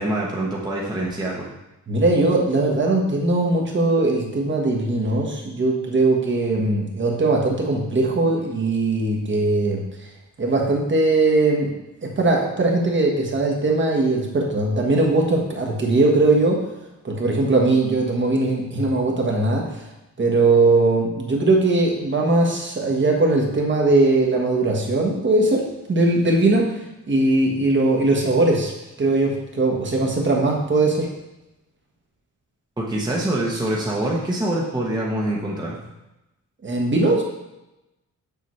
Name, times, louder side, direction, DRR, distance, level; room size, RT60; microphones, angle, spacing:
voice 1, 0.0-1.5 32.8-35.8, right 1 dB, 15° right, -4 dB, 0.9 m, -25 dB
voice 2, 1.9-9.8 10.4-11.7 12.0-16.6 17.0-19.9 20.2-25.6 25.9-28.7 29.0-31.1 36.6-37.2, right 2 dB, 40° right, 0 dB, 1.3 m, -20 dB
6.9 x 6.9 x 3.2 m, 0.95 s
wide cardioid pair, 150°, 31 cm